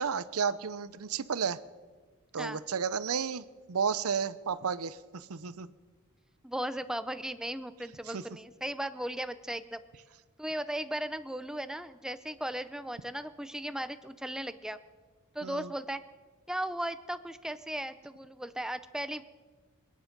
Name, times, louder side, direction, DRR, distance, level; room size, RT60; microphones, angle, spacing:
voice 1, 0.0-1.6 2.3-5.7 8.1-8.2 15.4-15.7, right 6 dB, 75° right, 16 dB, 0.7 m, -32 dB
voice 2, 6.4-9.8 10.4-14.8 15.3-16.0 16.5-19.2, right 1 dB, 5° right, 12 dB, 0.6 m, -36 dB
27.5 x 9.5 x 5.3 m, 1.4 s
head